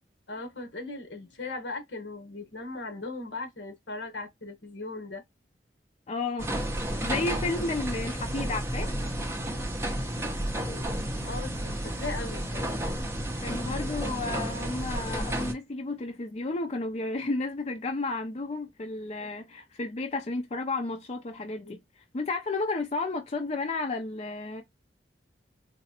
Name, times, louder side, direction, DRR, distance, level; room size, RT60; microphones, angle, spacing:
voice 1, 0.3-5.2 10.7-10.9 11.2-12.8 21.6-21.7, left 3 dB, 75° left, 1.2 m, -38 dB
voice 2, 6.1-6.5 7.0-8.9 13.4-24.6, left 3 dB, 35° left, 0.5 m, -32 dB
sound 1, 6.4-15.5, right 1 dB, 15° right, 0.7 m, -32 dB
4.1 x 2.4 x 2.8 m
head